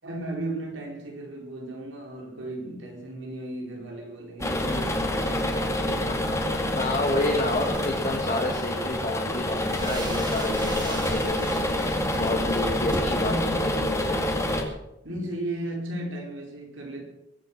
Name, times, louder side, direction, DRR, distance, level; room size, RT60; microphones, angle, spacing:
voice 1, 0.0-6.3 13.1-13.6 15.0-17.1, right 1 dB, 80° right, 4.6 m, -35 dB
sound 1, 4.4-14.6, left 1 dB, 15° left, 2.3 m, -27 dB
voice 2, 6.1-6.4 6.8-11.4 12.2-14.2, left 2 dB, 40° left, 1.9 m, -29 dB
sound 2, 6.3-13.0, right 1 dB, 25° right, 2.8 m, -40 dB
22.5 x 8.1 x 7.3 m
head